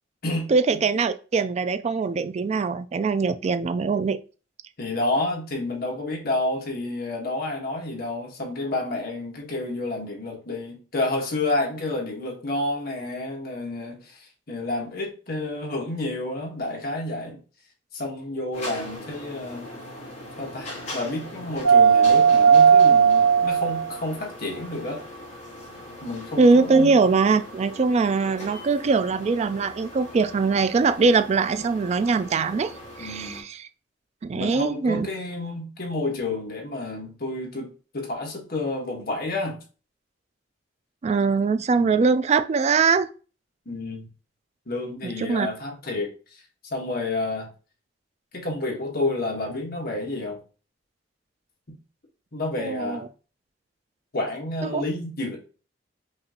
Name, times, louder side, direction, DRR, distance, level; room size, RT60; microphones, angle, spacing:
voice 1, 0.5-4.2 26.4-33.7 34.2-35.1 41.0-43.1 45.0-45.5 52.6-53.1 54.6-54.8, right 4 dB, 35° right, 0.3 m, -22 dB
voice 2, 4.8-17.4 17.9-19.7 20.4-25.0 26.0-26.9 33.0-33.4 34.3-39.6 41.7-42.0 43.6-44.1 44.7-46.1 46.7-47.5 48.3-50.4 51.7-51.8 52.3-53.1 54.1-55.4, left 2 dB, 55° left, 1.3 m, -30 dB
sound 1, 18.5-33.3, right 6 dB, 40° left, 1.7 m, -21 dB
5.4 x 2.5 x 2.8 m
head